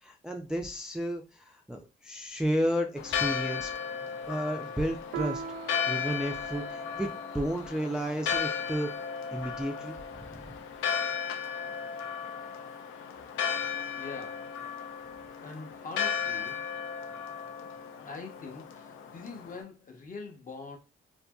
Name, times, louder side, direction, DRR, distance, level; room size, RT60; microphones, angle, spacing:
voice 1, 0.0-3.7 4.3-5.4 5.9-8.9 9.3-10.6, equal, 5° right, 0.3 m, -32 dB
Church bell, 3.0-19.6, left 7 dB, 85° left, 0.5 m, -35 dB
Piano, 5.1-10.1, right 6 dB, 70° right, 0.4 m, -43 dB
voice 2, 14.0-14.6 15.4-16.7 18.0-20.8, left 4 dB, 45° left, 0.7 m, -43 dB
2.6 x 2.5 x 2.2 m
cardioid pair, 90°, 20 cm